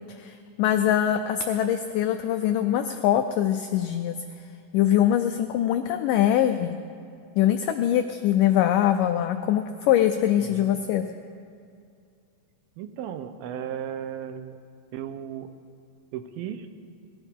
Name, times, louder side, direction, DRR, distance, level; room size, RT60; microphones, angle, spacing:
voice 1, 0.1-4.2 4.7-6.8 7.4-11.0, left 11 dB, 85° left, 7 dB, 1.9 m, -23 dB
voice 2, 10.4-10.8 12.8-14.6 14.9-15.5 16.1-16.7, right 9 dB, 80° right, 9 dB, 2.5 m, -35 dB
20.0 x 16.5 x 3.6 m, 2.4 s
omnidirectional pair, 4.3 m